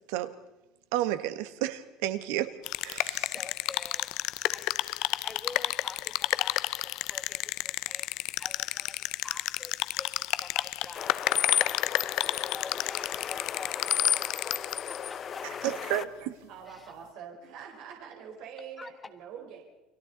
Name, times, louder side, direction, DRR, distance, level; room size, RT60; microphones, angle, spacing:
voice 1, 0.9-2.5 2.8-3.3 15.6-16.5, right 13 dB, 90° right, 11 dB, 1.5 m, -31 dB
sound 1, 2.6-15.0, left 18 dB, 60° left, 0.6 m, -31 dB
voice 2, 3.1-4.1 4.5-9.7 10.0-14.3 14.9-15.4 16.7-16.9 18.8-18.9, left 3 dB, 15° left, 7 dB, 1.6 m, -47 dB
sound 2, 11.0-16.0, left 8 dB, 30° left, 0.8 m, -32 dB
voice 3, 16.5-19.6, right 7 dB, 60° right, 1 dB, 4.2 m, -44 dB
30.0 x 22.5 x 4.1 m, 1.0 s
cardioid pair, 160°, 0 cm